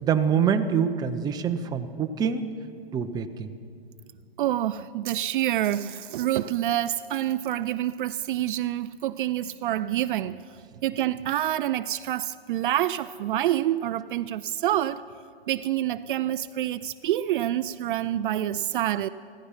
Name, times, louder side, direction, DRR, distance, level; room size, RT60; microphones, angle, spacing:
voice 1, 0.0-2.4 2.9-3.5, right 7 dB, 15° right, 0.6 m, -25 dB
voice 2, 4.4-10.4 10.8-15.1 15.5-19.1, right 12 dB, 55° right, 0.4 m, -27 dB
15.5 x 14.0 x 5.6 m
hypercardioid pair, 130°, 31 cm